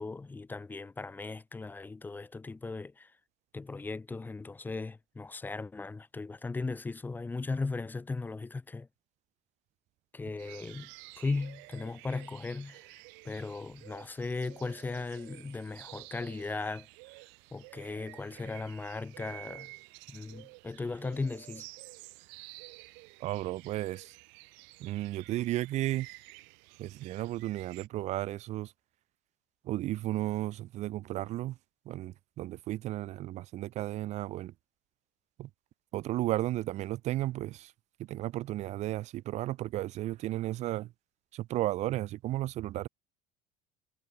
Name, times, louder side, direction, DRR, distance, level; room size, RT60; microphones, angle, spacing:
voice 1, 0.0-3.1 3.5-8.9 10.1-12.9 13.2-16.9 17.5-19.7 20.1-21.7, left 3 dB, 10° left, 0.8 m, -37 dB
sound 1, 10.4-27.9, right 33 dB, 65° right, 6.2 m, -51 dB
voice 2, 23.2-24.2 24.8-26.1 26.8-28.7 29.6-31.6 31.9-34.5 35.4-35.5 35.9-37.7 38.0-40.9 41.3-42.9, right 15 dB, 35° right, 0.5 m, -34 dB
cardioid pair, 165°, 20 cm